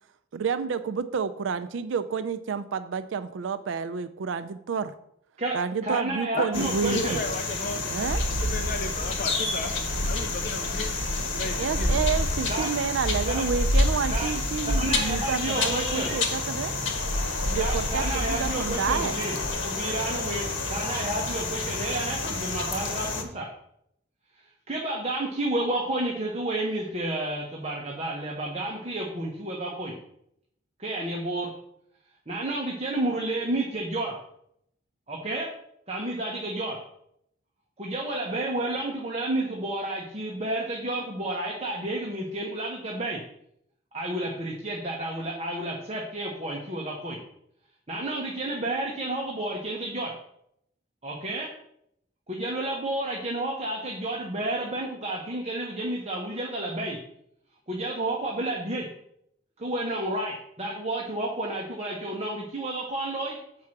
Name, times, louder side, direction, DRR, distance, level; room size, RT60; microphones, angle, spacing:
voice 1, 0.3-4.9 5.5-7.2 7.9-8.2 11.6-16.7 17.3-19.2, right 6 dB, 75° right, 11 dB, 0.4 m, -29 dB
voice 2, 5.4-7.2 12.5-12.7 13.2-13.4 14.1-14.3 14.6-16.1 17.6-19.4 19.6-23.5 24.7-30.0 30.8-31.5 32.3-34.2 35.1-35.5 35.9-36.8 37.8-43.2 43.9-47.2 47.9-50.1 51.0-51.5 52.3-57.0 57.7-58.8 59.6-63.4, right 1 dB, 35° right, -2 dB, 1.0 m, -31 dB
voice 3, 6.4-9.7 10.0-10.9 11.3-11.9, left 2 dB, 45° left, 6 dB, 0.6 m, -34 dB
sound 1, 6.5-23.2, left 2 dB, 85° left, 1.3 m, -28 dB
7.6 x 4.7 x 5.9 m, 0.74 s
head